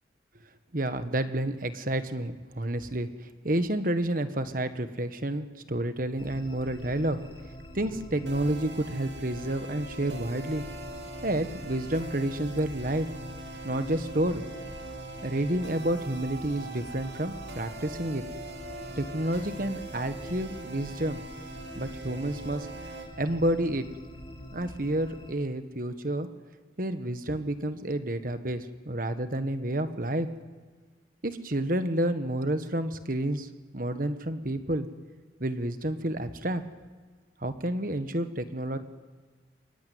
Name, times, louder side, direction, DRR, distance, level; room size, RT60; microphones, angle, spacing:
voice 1, 0.7-7.2 7.7-10.6 11.2-13.1 13.6-14.4 15.2-18.2 19.0-21.2 21.7-22.7 23.2-23.9 24.5-26.3 26.8-30.3 31.2-33.5 33.7-34.9 35.4-36.6 37.4-38.8, right 1 dB, 45° right, 10 dB, 1.4 m, -30 dB
sound 1, 6.2-25.3, equal, 30° left, 2.7 m, -44 dB
sound 2, 8.3-23.1, right 3 dB, 80° right, 2.6 m, -43 dB
24.0 x 20.5 x 9.5 m, 1.4 s
head